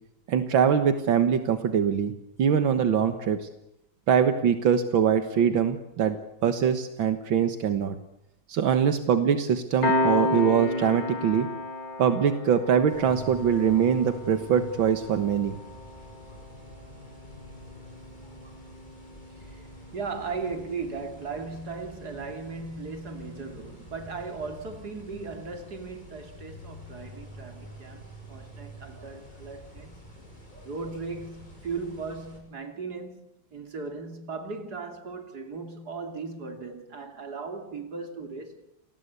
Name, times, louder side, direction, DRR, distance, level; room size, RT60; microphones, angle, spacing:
voice 1, 0.3-2.1 2.4-3.5 4.1-6.2 6.4-7.9 8.5-11.5 12.0-15.5, right 7 dB, 80° right, 2.1 m, -23 dB
Piano, 9.8-20.9, left 2 dB, 50° left, 3.3 m, -33 dB
sound 1, 12.9-32.4, equal, 20° left, 7.4 m, -47 dB
voice 2, 19.3-19.7 19.9-30.1 30.6-38.6, right 4 dB, 55° right, 3.5 m, -37 dB
29.5 x 19.5 x 8.3 m
omnidirectional pair, 2.1 m